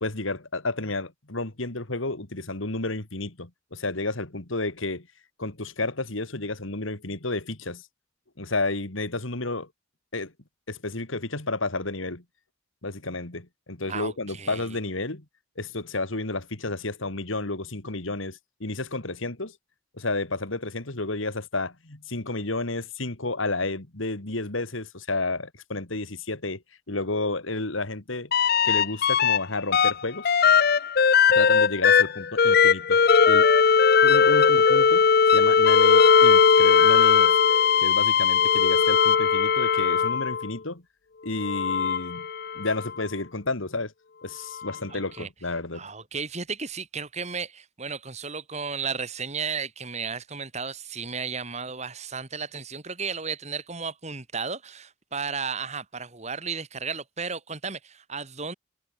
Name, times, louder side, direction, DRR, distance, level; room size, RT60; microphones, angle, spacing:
voice 1, 0.0-5.1 5.4-7.8 8.4-9.7 10.1-10.3 10.7-12.2 12.8-15.2 15.6-19.6 20.0-26.6 26.9-28.3 28.6-30.3 30.7-30.9 31.3-33.0 33.3-33.5 34.0-35.1 35.3-37.4 37.8-40.8 41.2-42.3 42.5-43.9 44.2-45.8, left 2 dB, 75° left, 2.6 m, -31 dB
voice 2, 13.9-14.8 44.9-45.3 45.7-58.5, right 5 dB, 35° right, 2.3 m, -34 dB
sound 1, 28.3-29.4 29.7-40.5 41.3-42.9 44.6-44.7, left 6 dB, 50° left, 0.5 m, -19 dB
head